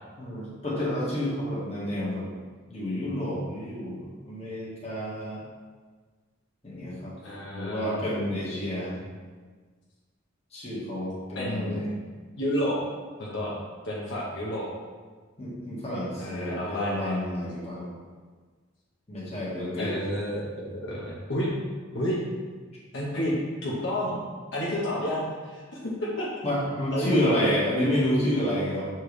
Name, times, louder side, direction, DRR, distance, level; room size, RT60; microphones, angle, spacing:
voice 1, 0.2-2.3 2.7-5.4 6.6-7.1 7.5-8.9 10.5-11.8 15.4-17.9 19.1-19.9 26.4-28.9, equal, 30° left, -7 dB, 1.7 m, -29 dB
voice 2, 7.2-7.9 11.3-11.8 12.4-12.8 13.2-13.5 13.8-14.7 16.2-17.2 19.8-21.5 21.9-22.2 22.9-23.3 23.6-24.1 24.5-25.6 26.0-26.3 26.6-27.6, equal, 60° left, -6 dB, 1.2 m, -30 dB
6.6 x 4.5 x 3.3 m, 1.5 s
head